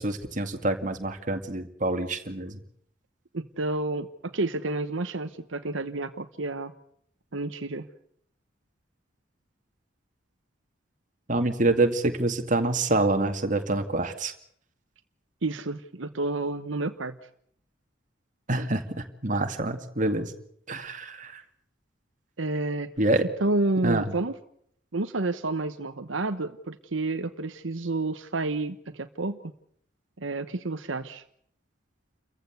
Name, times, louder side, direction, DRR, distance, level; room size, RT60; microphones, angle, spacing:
voice 1, 0.0-2.6 11.3-14.3 18.5-18.8 19.2-20.3 20.7-21.4 23.0-23.2 23.8-24.0, right 2 dB, 40° right, 5 dB, 2.3 m, -26 dB
voice 2, 3.3-6.7 7.3-7.9 15.4-17.2 22.4-22.9 23.4-24.3 24.9-29.5 30.2-31.2, right 2 dB, 80° right, 9 dB, 1.1 m, -30 dB
29.0 x 15.0 x 8.1 m, 0.68 s
head